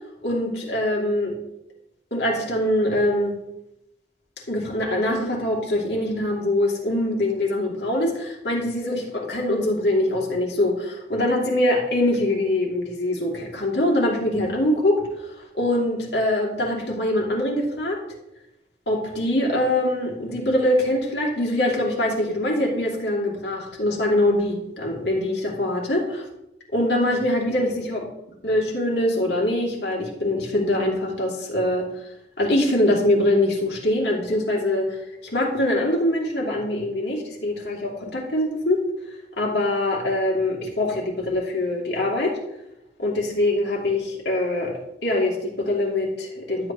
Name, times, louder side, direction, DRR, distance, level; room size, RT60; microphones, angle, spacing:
voice 1, 0.2-1.3 2.1-3.4 4.5-18.0 18.9-26.3 26.7-28.0 28.4-38.9 39.4-42.4 43.0-46.7, left 1 dB, 75° left, -2 dB, 2.9 m, -23 dB
12.5 x 8.5 x 3.1 m, 0.86 s
head